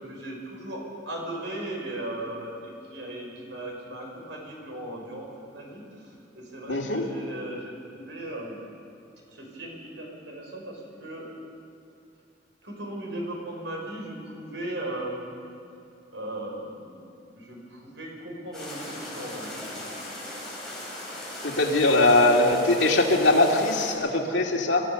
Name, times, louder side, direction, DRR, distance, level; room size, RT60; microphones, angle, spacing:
voice 1, 0.0-5.3 5.5-8.6 9.3-11.3 12.6-15.3 16.1-17.0 17.4-19.8, right 1 dB, 75° right, 0 dB, 5.2 m, -37 dB
voice 2, 6.7-7.0 21.4-24.8, left 2 dB, 75° left, 0 dB, 2.4 m, -21 dB
sound 1, 18.5-23.9, left 1 dB, 5° left, 6.0 m, -38 dB
27.0 x 14.0 x 6.9 m, 2.5 s
head